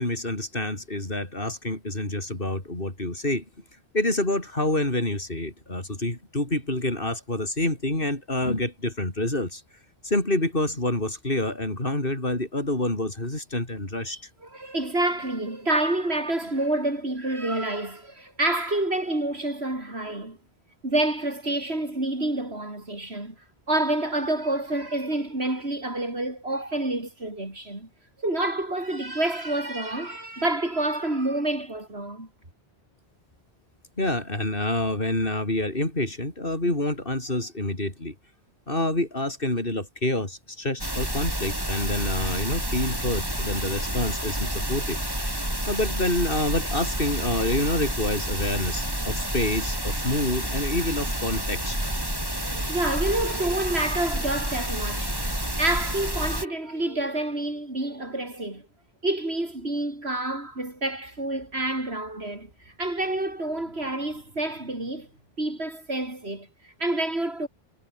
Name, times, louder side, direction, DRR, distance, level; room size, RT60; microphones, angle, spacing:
voice 1, 0.0-3.5 3.9-9.6 10.0-14.3 34.0-38.2 38.7-45.0 45.7-51.8, left 1 dB, 60° left, 5.3 m, -27 dB
voice 2, 14.4-20.4 20.8-23.4 23.7-27.9 28.2-32.3 52.4-58.7 59.0-65.1 65.4-67.5, right 1 dB, 90° right, 6.1 m, -28 dB
sound 1, 40.8-56.4, right 1 dB, 20° right, 5.3 m, -29 dB
omnidirectional pair, 1.0 m